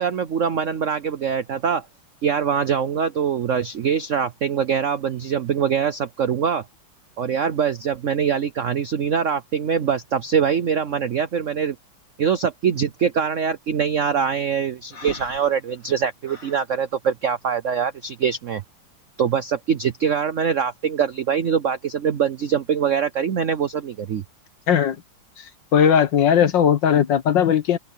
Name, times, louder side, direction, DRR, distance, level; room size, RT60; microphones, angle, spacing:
voice 1, 0.0-1.9 2.2-6.6 7.2-11.8 12.2-18.6 19.2-24.2, right 7 dB, 75° right, 0.7 m, -23 dB
Breathing, 14.9-16.7, left 3 dB, 85° left, 5.9 m, -39 dB
voice 2, 25.7-27.8, left 8 dB, 60° left, 1.9 m, -18 dB
open air
omnidirectional pair, 2.3 m